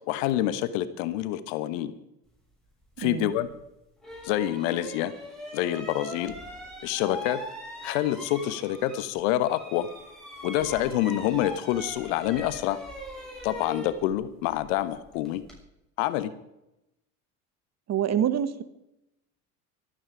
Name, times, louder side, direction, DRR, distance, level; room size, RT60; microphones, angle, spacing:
voice 1, 0.1-1.9 3.0-3.5 4.2-5.1 5.5-6.3 6.8-7.4 7.8-9.9 10.4-12.8 13.4-15.4 16.0-16.3, left 13 dB, 60° left, 15 dB, 1.2 m, -27 dB
voice 2, 3.0-3.3 17.9-18.6, right 9 dB, 35° right, 14 dB, 1.2 m, -26 dB
sound 1, 3.4-3.5 4.0-9.2 9.4-15.6, left 1 dB, ahead, 6.7 m, -41 dB
24.0 x 8.9 x 5.1 m, 0.88 s
figure-of-eight pair, 65°, 45 cm